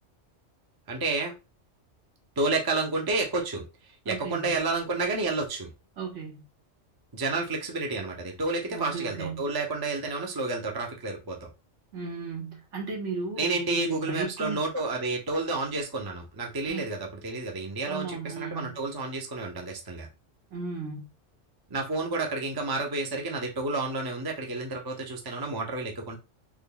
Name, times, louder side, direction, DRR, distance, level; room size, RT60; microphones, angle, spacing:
voice 1, 0.9-1.3 2.4-3.6 4.1-5.7 7.1-11.5 13.4-20.1 21.7-26.2, right 3 dB, 25° right, 0.6 m, -30 dB
voice 2, 4.1-4.6 6.0-6.4 8.7-9.5 11.9-14.6 16.7-16.9 17.8-18.8 20.5-21.1, right 5 dB, 75° right, 1.4 m, -35 dB
3.7 x 3.1 x 2.2 m
omnidirectional pair, 1.3 m